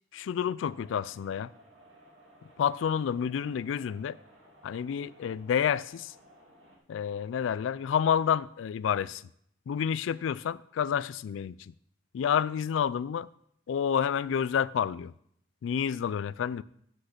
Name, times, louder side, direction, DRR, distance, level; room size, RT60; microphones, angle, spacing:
voice 1, 0.1-1.5 2.6-4.2 4.6-6.1 6.9-9.2 9.7-11.7 12.1-13.3 13.7-15.1 15.6-16.6, left 8 dB, 85° left, 0.3 m, -29 dB
sound 1, 0.6-6.8, equal, 80° right, 2.2 m, -57 dB
8.4 x 5.3 x 5.8 m
head